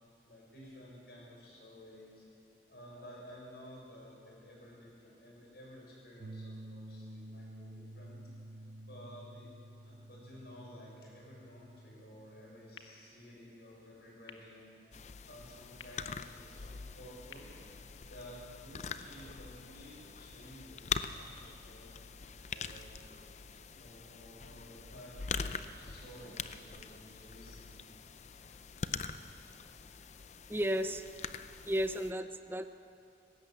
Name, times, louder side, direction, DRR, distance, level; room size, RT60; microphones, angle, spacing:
voice 1, 0.2-2.2 2.7-8.2 8.8-9.5 9.8-14.8 15.2-17.5 18.0-21.9 22.5-23.0 23.8-27.8, equal, 60° left, -3 dB, 6.6 m, -53 dB
sound 1, 6.2-12.8, right 1 dB, 75° right, 0.7 m, -50 dB
sound 2, 12.7-18.7, left 5 dB, 85° left, 1.6 m, -59 dB
sound 3, 14.9-32.1, left 5 dB, 40° left, 0.5 m, -43 dB
voice 2, 30.5-31.0 31.7-32.6, equal, 10° right, 9 dB, 0.5 m, -33 dB
19.5 x 17.0 x 7.9 m, 2.6 s
head